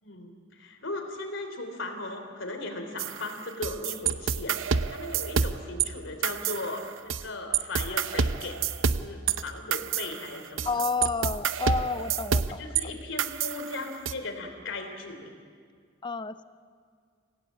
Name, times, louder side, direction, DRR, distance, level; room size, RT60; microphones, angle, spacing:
voice 1, 0.0-4.6 4.9-8.6 8.8-10.7 12.6-15.3, left 2 dB, 70° left, 5 dB, 3.3 m, -37 dB
sound 1, 3.0-5.9 6.2-7.3 7.5-12.8 13.2-14.1, right 6 dB, 80° right, 0.7 m, -28 dB
voice 2, 10.6-12.6 16.0-16.4, left 4 dB, 25° left, 13 dB, 0.6 m, -30 dB
27.0 x 17.5 x 8.5 m, 2.1 s
head